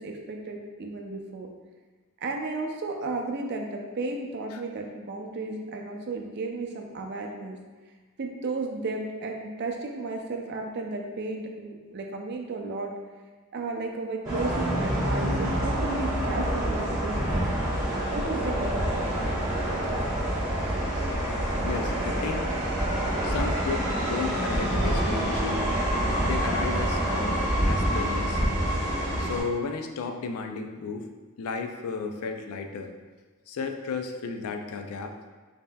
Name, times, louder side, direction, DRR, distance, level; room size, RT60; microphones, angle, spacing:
voice 1, 0.0-1.5 2.2-7.6 8.2-12.9 13.5-17.5 18.1-19.1, right 3 dB, 50° right, 2 dB, 0.4 m, -34 dB
sound 1, 14.2-29.4, right 1 dB, 15° right, 1.0 m, -27 dB
voice 2, 21.6-22.5 23.2-25.6 26.2-28.4 29.2-31.1 31.4-32.9 33.5-35.2, left 4 dB, 90° left, 5 dB, 0.4 m, -33 dB
5.3 x 2.7 x 2.2 m, 1.3 s
head